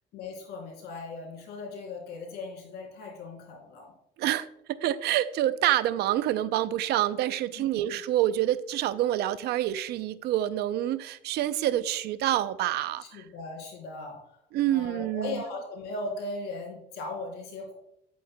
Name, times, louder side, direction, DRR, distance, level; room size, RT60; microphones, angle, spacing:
voice 1, 0.1-3.9 7.6-8.0 13.0-14.2 14.7-17.7, left 3 dB, 75° left, 3.4 m, -38 dB
voice 2, 4.2-13.2 14.5-15.4, right 13 dB, 75° right, 0.5 m, -27 dB
9.5 x 8.6 x 2.2 m
cardioid pair, 110°, 17 cm